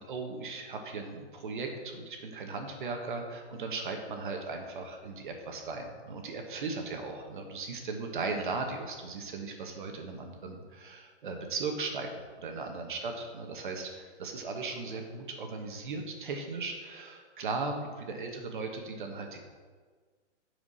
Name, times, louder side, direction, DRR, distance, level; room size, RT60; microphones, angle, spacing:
voice 1, 0.1-12.1 12.4-19.4, right 3 dB, 45° right, 3 dB, 1.4 m, -37 dB
9.7 x 5.0 x 6.3 m, 1.5 s
hypercardioid pair, 175°, 36 cm